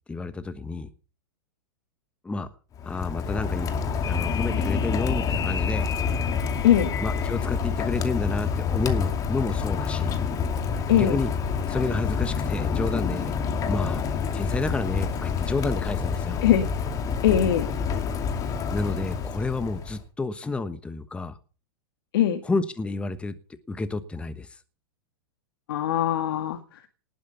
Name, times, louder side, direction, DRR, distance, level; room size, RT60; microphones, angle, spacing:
voice 1, 0.1-0.9 2.2-2.5 2.8-3.7 4.0-5.9 7.0-10.1 11.0-11.3 11.7-13.3 13.7-16.4 18.7-21.4 22.4-23.3 23.7-24.6, left 3 dB, 10° left, 1.2 m, -30 dB
Rain, 2.7-20.0, left 6 dB, 25° left, 2.6 m, -28 dB
sound 1, 4.0-7.5, left 8 dB, 85° left, 1.5 m, -36 dB
voice 2, 10.9-11.2 16.4-16.7 17.2-17.7 22.1-22.4 25.7-26.9, left 10 dB, 65° left, 2.0 m, -21 dB
19.0 x 9.4 x 6.9 m
hypercardioid pair, 125°, 13 cm